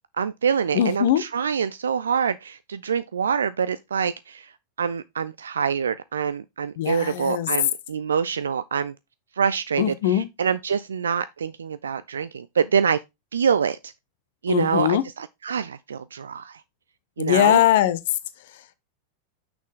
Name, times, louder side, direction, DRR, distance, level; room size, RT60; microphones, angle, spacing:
voice 1, 0.2-4.5 4.8-8.9 9.4-13.0 13.3-13.9 14.4-16.6 17.2-17.6, right 7 dB, 70° right, 0.3 m, -25 dB
voice 2, 0.7-1.2 6.8-7.5 9.8-10.3 14.5-15.0 17.2-18.0, left 12 dB, 55° left, 0.8 m, -21 dB
6.2 x 6.0 x 3.6 m
figure-of-eight pair, 90°, 0 cm